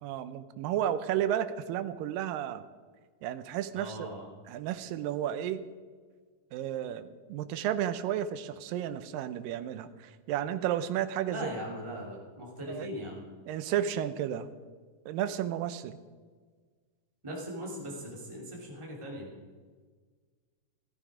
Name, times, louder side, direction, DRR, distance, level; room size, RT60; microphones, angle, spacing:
voice 1, 0.0-2.6 3.2-4.1 4.5-5.6 6.5-11.5 12.7-12.9 13.5-14.5 15.1-16.0, right 10 dB, 85° right, 11 dB, 2.4 m, -32 dB
voice 2, 3.7-4.2 11.3-13.2 17.2-19.3, equal, 10° right, -4 dB, 2.7 m, -39 dB
15.0 x 14.0 x 5.0 m, 1.5 s
omnidirectional pair, 3.9 m